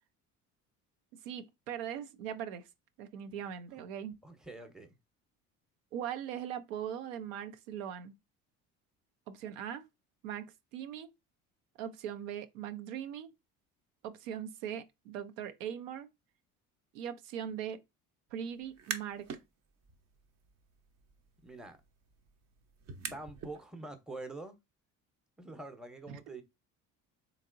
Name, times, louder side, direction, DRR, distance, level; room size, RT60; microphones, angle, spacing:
voice 1, 1.2-2.7 3.0-4.2 5.9-8.2 9.3-9.8 10.2-10.5 10.7-11.1 11.8-13.3 14.0-16.1 16.9-17.8 18.3-19.3 26.1-26.4, right 9 dB, 85° right, 0.5 m, -40 dB
voice 2, 4.2-4.9 21.4-21.8 23.1-24.6 25.4-26.4, right 2 dB, ahead, 0.7 m, -45 dB
sound 1, 18.6-19.4 19.8-23.6, right 6 dB, 45° right, 0.6 m, -45 dB
3.5 x 2.9 x 2.5 m
hypercardioid pair, 65°, 38 cm